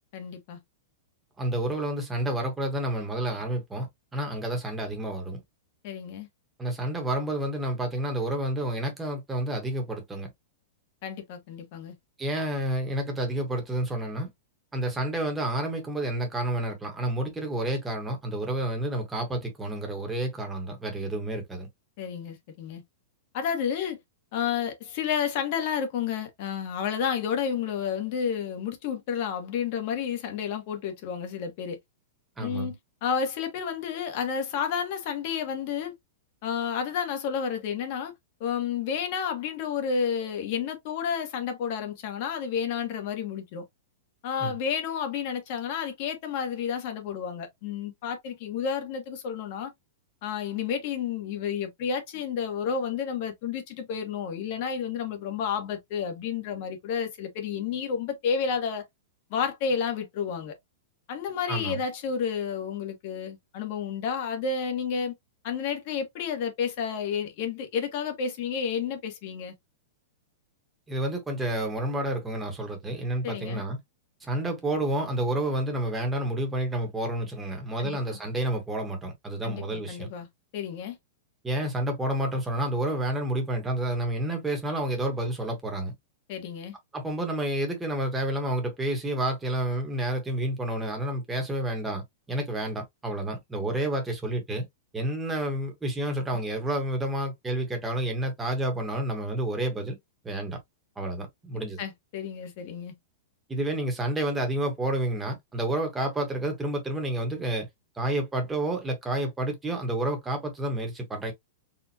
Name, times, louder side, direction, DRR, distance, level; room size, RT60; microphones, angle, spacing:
voice 1, 0.1-0.6 5.8-6.3 11.0-11.9 22.0-22.8 23.3-24.0 24.3-31.8 32.4-35.9 36.4-38.1 38.4-43.6 44.2-49.7 50.2-58.8 59.3-60.5 61.1-65.1 65.4-69.5 73.2-73.6 77.8-78.0 79.4-80.3 80.5-81.0 86.3-86.7 101.8-102.9, left 7 dB, 45° left, 1.3 m, -31 dB
voice 2, 1.4-3.9 4.1-5.4 6.6-10.3 12.2-14.3 14.7-21.7 32.4-32.7 44.4-44.5 61.5-61.8 70.9-73.8 74.2-80.1 81.4-85.9 86.9-94.6 94.9-100.0 100.2-100.6 101.0-101.8 103.5-107.7 108.0-111.3, right 1 dB, 10° right, 1.2 m, -29 dB
4.3 x 2.4 x 2.8 m
supercardioid pair, 160°, 0 cm